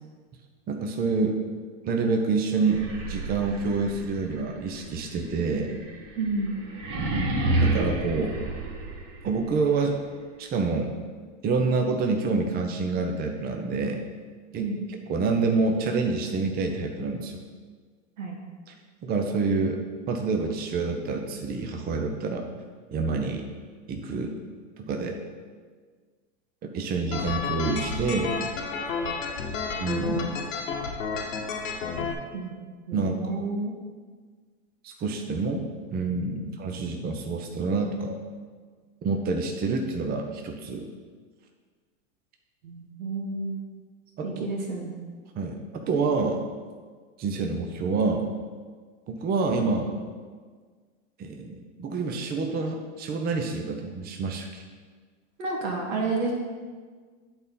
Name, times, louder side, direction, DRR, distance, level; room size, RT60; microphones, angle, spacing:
voice 1, 0.7-1.4 1.8-5.8 7.6-8.4 9.2-10.0 10.4-10.9 11.4-14.0 14.5-14.7 15.1-17.4 18.7-18.8 19.0-19.8 20.1-22.5 22.9-23.4 23.9-24.4 24.9-25.2 26.6-28.4 29.8-30.4 32.9-33.4 34.8-35.6 35.9-38.2 39.0-40.9 44.2-44.5 45.4-45.6 45.9-46.4 47.2-48.3 49.1-50.0 51.2-54.6, right 4 dB, 25° right, 3 dB, 0.7 m, -27 dB
sound 1, 2.6-9.5, right 2 dB, 60° right, 1.7 m, -30 dB
voice 2, 6.2-6.5 14.6-14.8 18.2-18.4 32.3-32.5 32.9-33.7 36.3-36.4 42.6-43.6 44.2-44.9 55.4-56.3, right 3 dB, 85° right, -1 dB, 2.0 m, -30 dB
sound 2, 27.1-32.1, left 5 dB, 85° left, 1.2 m, -31 dB
8.9 x 4.2 x 5.4 m, 1.5 s
supercardioid pair, 125°, 38 cm